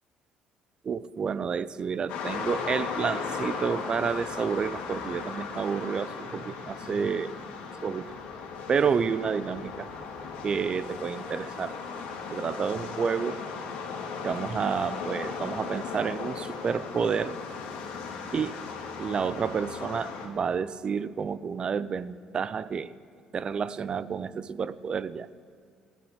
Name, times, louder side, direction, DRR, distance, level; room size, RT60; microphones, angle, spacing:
voice 1, 0.8-7.3 7.8-8.0 8.7-9.9 10.4-11.7 12.3-13.4 14.2-17.4 18.3-18.6 19.0-22.9 23.3-25.3, right 6 dB, 45° right, 16 dB, 0.5 m, -30 dB
sound 1, 2.1-20.3, left 5 dB, 80° left, 2.2 m, -37 dB
15.0 x 9.3 x 8.2 m, 2.3 s
supercardioid pair, 70°, 2 cm